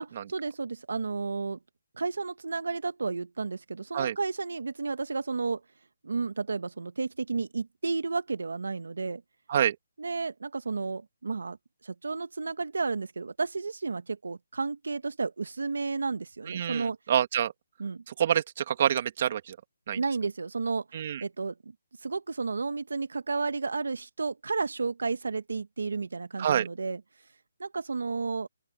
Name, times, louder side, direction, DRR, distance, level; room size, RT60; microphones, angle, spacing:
voice 1, 0.0-1.6 2.0-5.6 6.0-9.2 10.0-11.6 11.8-17.0 17.8-18.0 19.9-20.8 21.2-21.7 22.0-27.0 27.6-28.5, right 4 dB, 80° right, 1.2 m, -32 dB
voice 2, 16.5-17.5 18.1-19.6 19.9-20.0 20.9-21.2 26.4-26.7, right 9 dB, 35° right, 2.3 m, -27 dB
open air
hypercardioid pair, 170°, 0 cm